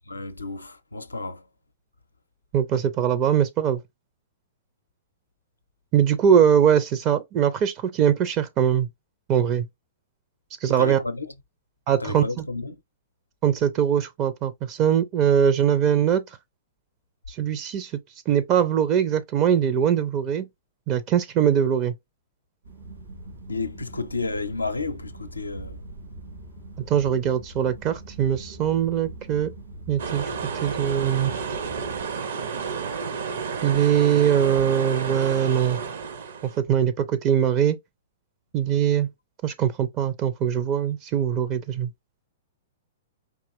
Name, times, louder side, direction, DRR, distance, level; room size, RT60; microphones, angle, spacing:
voice 1, 0.1-1.4 10.8-11.3 12.0-12.8 23.5-25.8, left 3 dB, 85° left, 0.5 m, -31 dB
voice 2, 2.5-3.8 5.9-8.9 9.3-9.7 10.6-11.0 11.9-12.5 13.4-16.2 17.3-17.9 18.3-20.5 20.9-21.9 26.9-29.5 29.9-30.3 30.6-31.3 33.6-35.8 36.4-37.8 38.5-39.1 39.4-41.9, right 9 dB, 35° right, 0.5 m, -22 dB
sound 1, 22.6-32.1, right 1 dB, 80° right, 3.2 m, -42 dB
sound 2, 30.0-36.6, right 5 dB, 60° right, 0.8 m, -31 dB
4.8 x 2.9 x 2.7 m
figure-of-eight pair, 110°, 0 cm